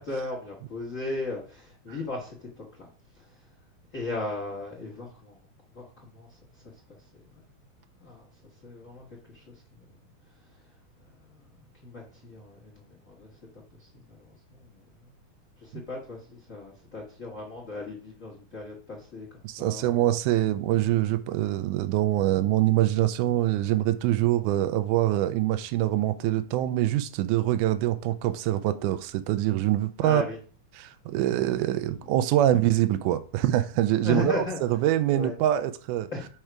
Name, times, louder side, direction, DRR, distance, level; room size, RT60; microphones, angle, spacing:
voice 1, 0.0-2.9 3.1-3.5 3.9-5.5 5.7-7.4 7.9-10.0 10.3-10.7 11.0-15.2 15.6-20.0 30.0-30.4 31.9-32.1 34.0-34.6 35.1-35.3 36.1-36.3, left 2 dB, 50° left, 0.9 m, -38 dB
voice 2, 19.4-30.2 30.8-34.4 34.7-36.1, right 13 dB, 85° right, 2.1 m, -24 dB
5.5 x 4.9 x 4.5 m
omnidirectional pair, 3.6 m